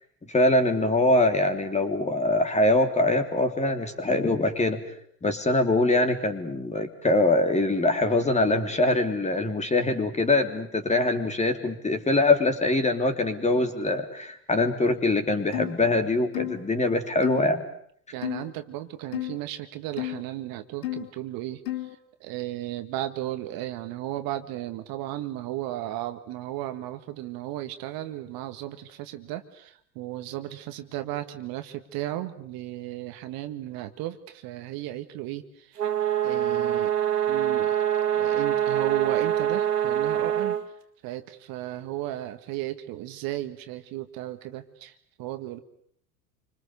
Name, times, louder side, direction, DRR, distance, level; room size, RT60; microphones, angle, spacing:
voice 1, 0.3-4.8 5.2-17.7, left 2 dB, 15° left, 6 dB, 3.2 m, -23 dB
sound 1, 15.5-15.8 16.3-16.6 17.2-17.4 18.2-18.5 19.1-19.4 20.0-20.2 20.8-21.1 21.7-22.0, left 16 dB, 60° left, 2.4 m, -32 dB
voice 2, 18.1-21.6 22.2-35.8 36.2-36.9 37.2-37.8 38.0-40.6 41.0-45.6, right 14 dB, 45° right, 8 dB, 1.9 m, -35 dB
sound 2, 35.8-40.6, right 10 dB, 80° right, 1.9 m, -25 dB
29.0 x 25.5 x 6.8 m, 0.66 s
figure-of-eight pair, 75°, 47 cm